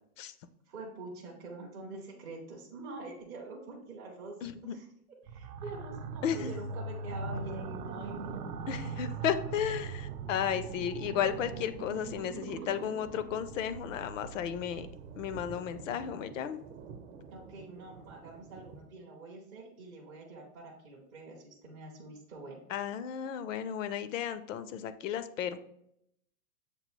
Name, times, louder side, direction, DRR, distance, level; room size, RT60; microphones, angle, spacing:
voice 1, 0.7-4.4 4.6-4.9 5.2-8.5 17.3-22.6, right 3 dB, 15° right, -4 dB, 0.4 m, -45 dB
voice 2, 4.4-4.8 6.2-6.6 8.7-14.9 15.2-16.6 22.7-25.6, left 9 dB, 55° left, 12 dB, 0.5 m, -34 dB
sound 1, 5.3-15.8, right 4 dB, 80° right, 0.7 m, -41 dB
Thunder, 5.7-18.8, right 5 dB, 50° right, 0.8 m, -52 dB
6.8 x 2.3 x 3.0 m, 0.76 s
hypercardioid pair, 140°, 46 cm